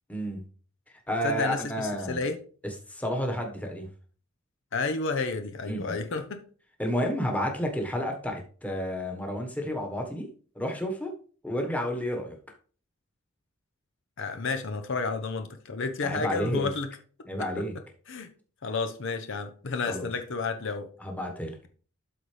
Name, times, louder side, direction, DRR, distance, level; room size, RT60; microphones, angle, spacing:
voice 1, 0.1-0.4 1.1-2.2 2.6-3.9 5.7-6.0 6.8-10.3 10.5-11.1 11.4-12.4 16.0-16.7 17.3-17.7 19.9-20.1 21.0-21.7, equal, 5° left, 1.3 m, -31 dB
voice 2, 1.2-2.4 4.7-6.4 14.2-16.9 17.4-17.7 18.1-18.3 18.6-20.9, left 4 dB, 60° left, 0.8 m, -31 dB
12.0 x 4.1 x 3.3 m
head